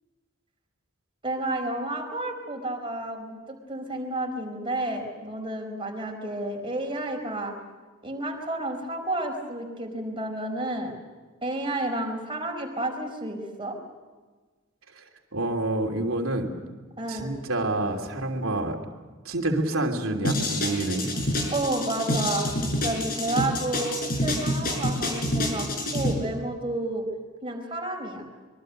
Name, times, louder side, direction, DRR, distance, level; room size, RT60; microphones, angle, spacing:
voice 1, 1.2-7.5 8.0-10.9 11.4-13.8 17.0-17.3 21.5-22.5 22.8-27.0 27.4-28.3, right 2 dB, 25° right, 2 dB, 4.7 m, -31 dB
voice 2, 15.3-16.5 17.1-18.8 19.2-21.1, right 2 dB, 75° right, 3 dB, 3.1 m, -28 dB
sound 1, 20.2-26.1, left 1 dB, 45° left, 5.6 m, -27 dB
25.5 x 23.0 x 6.6 m, 1.3 s
head